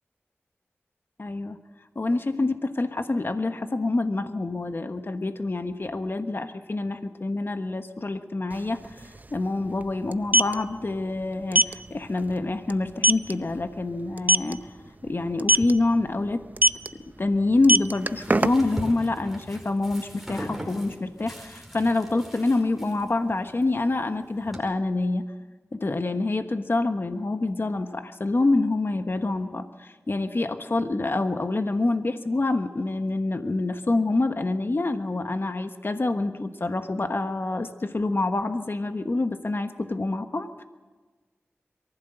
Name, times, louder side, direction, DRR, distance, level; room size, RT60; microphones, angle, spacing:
voice 1, 1.2-1.6 1.9-8.8 9.3-14.7 15.0-16.4 17.2-25.2 25.7-40.6, left 2 dB, 50° left, 8 dB, 1.2 m, -26 dB
sound 1, 8.5-8.6 8.8-9.0 10.1-10.5 11.5-11.7 12.2-12.4 12.7-12.8 13.0-13.3 14.2-14.5 15.4-15.7 16.6-16.9 17.5-18.8, right 1 dB, 35° right, 0.6 m, -19 dB
sound 2, 17.5-24.6, equal, 5° right, 4.8 m, -40 dB
23.0 x 15.0 x 7.9 m, 1.3 s
wide cardioid pair, 50°, 5 cm